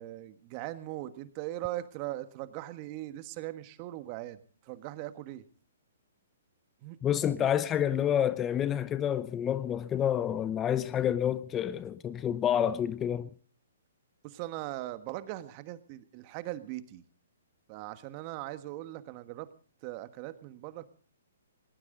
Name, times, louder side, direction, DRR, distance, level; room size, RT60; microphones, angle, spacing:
voice 1, 0.0-4.4 4.6-5.4 6.8-7.0 7.4-7.5 14.2-17.0 17.7-19.5 19.8-20.9, right 15 dB, 35° right, 1.5 m, -40 dB
voice 2, 7.0-13.3, left 10 dB, 20° left, 0.7 m, -28 dB
19.5 x 18.5 x 3.9 m
hypercardioid pair, 140°, 0 cm